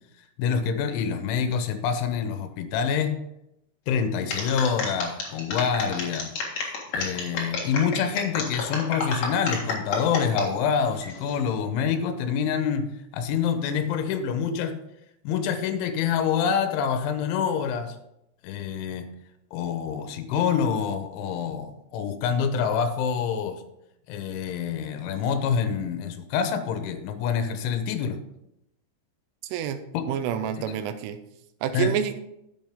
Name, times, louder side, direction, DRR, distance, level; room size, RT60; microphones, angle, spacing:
voice 1, 0.4-3.2 3.9-6.3 6.9-14.8 15.2-18.0 18.4-19.1 19.5-23.6 24.1-28.2 29.9-30.1 30.6-30.7 31.7-32.0, left 7 dB, 80° left, 9 dB, 3.2 m, -26 dB
sound 1, 4.3-10.5 10.9-11.4, left 4 dB, 65° left, 1.6 m, -30 dB
voice 2, 30.1-31.2 31.6-32.2, right 9 dB, 85° right, 9 dB, 3.3 m, -28 dB
11.5 x 7.5 x 3.6 m, 0.83 s
omnidirectional pair, 5.5 m